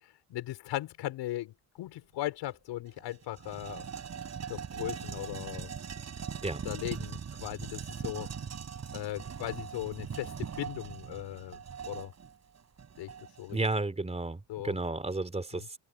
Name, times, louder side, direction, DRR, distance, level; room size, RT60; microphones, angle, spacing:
voice 1, 0.3-3.8 4.5-5.7 6.6-8.3 8.9-10.3 10.6-12.1 13.0-13.6 14.5-14.8 15.5-15.7, left 15 dB, 70° left, 5.2 m, -38 dB
sound 1, 2.4-2.5 2.9-13.6, right 7 dB, 35° right, 5.7 m, -41 dB
voice 2, 13.5-15.8, right 2 dB, 15° right, 4.0 m, -32 dB
supercardioid pair, 95°, 44 cm